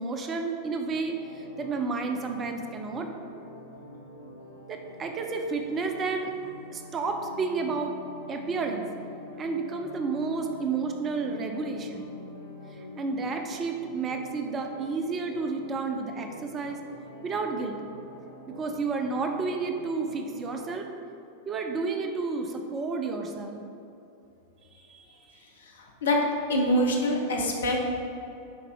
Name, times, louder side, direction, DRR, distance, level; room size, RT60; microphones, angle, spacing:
voice 1, 0.0-3.1 4.7-6.3 6.7-7.9 8.3-8.9 9.4-12.1 13.0-16.8 17.2-17.8 18.5-20.9 21.5-23.6 24.9-25.0, right 4 dB, 25° right, 4 dB, 0.7 m, -31 dB
sound 1, 0.9-20.7, left 1 dB, 90° left, 1.4 m, -46 dB
voice 2, 25.6-26.2 26.5-27.8, left 1 dB, 65° left, 0 dB, 1.2 m, -25 dB
10.0 x 4.2 x 3.9 m, 2.8 s
figure-of-eight pair, 90°, 0 cm